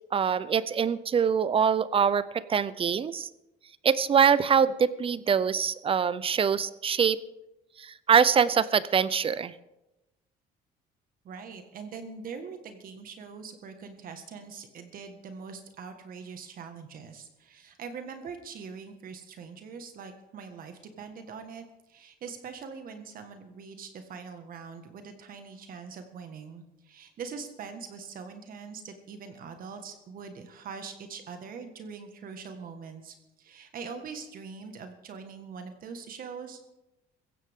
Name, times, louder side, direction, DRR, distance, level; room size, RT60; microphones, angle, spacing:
voice 1, 0.1-3.3 3.8-7.2 7.8-9.5, right 7 dB, 35° right, 17 dB, 0.6 m, -24 dB
voice 2, 11.2-36.6, right 5 dB, 55° right, 7 dB, 1.7 m, -43 dB
16.0 x 15.5 x 3.7 m, 0.96 s
cardioid pair, 110°, 17 cm